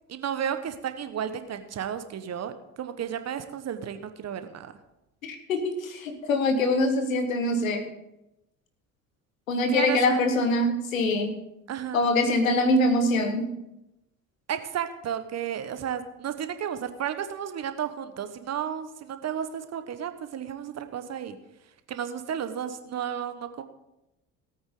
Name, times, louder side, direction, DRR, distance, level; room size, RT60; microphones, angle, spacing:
voice 1, 0.1-4.7 9.7-10.3 11.7-12.0 14.5-21.4 21.9-23.6, right 9 dB, 40° right, 10 dB, 1.2 m, -33 dB
voice 2, 5.2-7.9 9.5-11.4 11.9-13.5, left 1 dB, 80° left, 7 dB, 1.5 m, -24 dB
18.0 x 8.7 x 3.8 m, 0.91 s
figure-of-eight pair, 55°, 40 cm